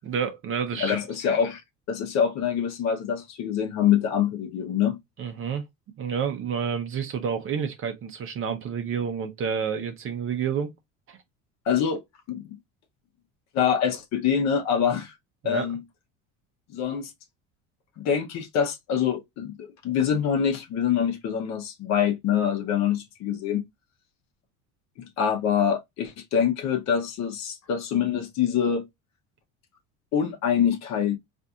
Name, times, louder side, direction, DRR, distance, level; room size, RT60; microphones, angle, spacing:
voice 1, 0.0-1.0 5.2-5.6 6.0-10.7 11.1-11.2 15.4-15.7, right 7 dB, 40° right, 0.7 m, -29 dB
voice 2, 0.8-1.6 1.9-5.0 11.7-12.0 12.3-12.6 13.5-15.1 15.4-15.8 16.7-17.1 18.0-23.6 25.0-28.9 30.1-31.2, left 8 dB, 55° left, 0.8 m, -25 dB
4.0 x 2.6 x 2.3 m
cardioid pair, 140°, 34 cm